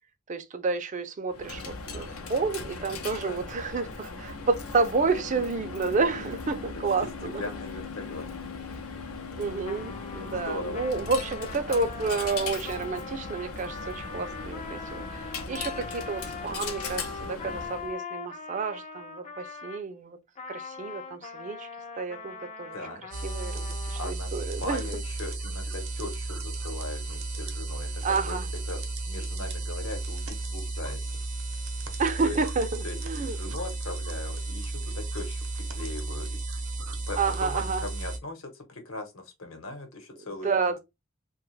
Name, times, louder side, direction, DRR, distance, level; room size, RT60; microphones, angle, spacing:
voice 1, 0.3-7.4 9.4-20.2 20.5-21.7 22.0-22.8 23.2-24.8 28.0-28.4 32.0-32.7 33.0-33.4 37.2-37.9 40.4-40.8, right 4 dB, 35° right, 0.4 m, -30 dB
Coin (dropping), 1.3-17.9, left 4 dB, 90° left, 0.6 m, -38 dB
voice 2, 7.4-8.3 10.3-10.8 22.7-23.0 23.9-28.4 28.7-31.3 32.2-32.4 32.8-36.4 37.1-40.8, left 2 dB, 70° left, 1.0 m, -39 dB
Trumpet, 9.6-19.9 20.4-24.1, left 5 dB, 30° left, 0.4 m, -41 dB
sound 1, 23.1-38.2, right 2 dB, 90° right, 0.7 m, -34 dB
2.7 x 2.3 x 3.1 m
head